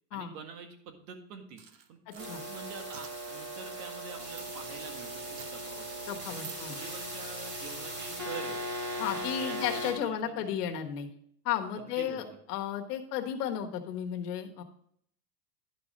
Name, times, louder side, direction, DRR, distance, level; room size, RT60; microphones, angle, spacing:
voice 1, 0.1-5.9 6.3-8.6 9.1-10.7 11.8-12.4, right 6 dB, 65° right, 5 dB, 1.9 m, -46 dB
sound 1, 1.6-2.4 2.9-3.1 4.4-4.5 5.2-5.5 6.3-6.6, right 10 dB, 80° right, 1.2 m, -48 dB
voice 2, 2.1-2.4 6.1-6.8 9.0-11.1 11.4-12.2 12.5-14.6, left 9 dB, 70° left, 4 dB, 1.4 m, -33 dB
sound 2, 2.2-9.9, right 1 dB, 35° right, 3.4 m, -38 dB
11.0 x 5.4 x 5.1 m, 0.66 s
supercardioid pair, 165°, 49 cm